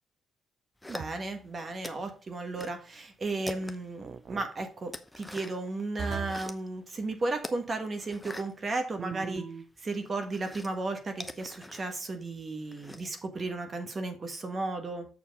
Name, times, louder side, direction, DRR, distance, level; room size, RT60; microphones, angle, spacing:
sound 1, 0.8-1.5 1.8-2.8 3.1-4.0 4.4-5.7 6.1-6.7 7.4-9.4 9.7-13.2, left 1 dB, 5° left, 0.8 m, -44 dB
voice 1, 0.9-9.5 9.8-15.1, right 2 dB, 35° right, 6 dB, 1.4 m, -34 dB
sound 2, 1.0-1.5 4.0-4.5 6.0-6.5 9.0-9.7, right 5 dB, 55° right, 0.6 m, -39 dB
7.4 x 4.4 x 5.3 m, 0.39 s
cardioid pair, 90°, 0 cm